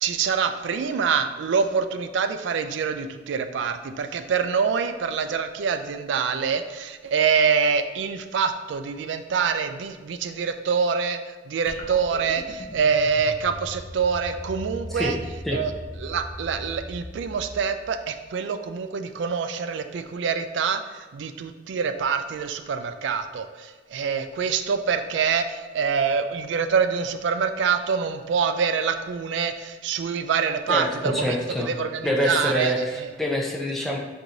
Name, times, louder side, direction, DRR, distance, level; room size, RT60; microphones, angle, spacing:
voice 1, 0.0-11.2 11.5-15.2 15.5-15.7 16.0-33.1, right 6 dB, 70° right, 8 dB, 0.3 m, -25 dB
sound 1, 11.7-18.2, equal, 55° left, 0.7 m, -39 dB
voice 2, 30.7-31.7 32.0-34.0, equal, ahead, -2 dB, 0.5 m, -26 dB
4.6 x 2.6 x 3.9 m, 1.3 s
head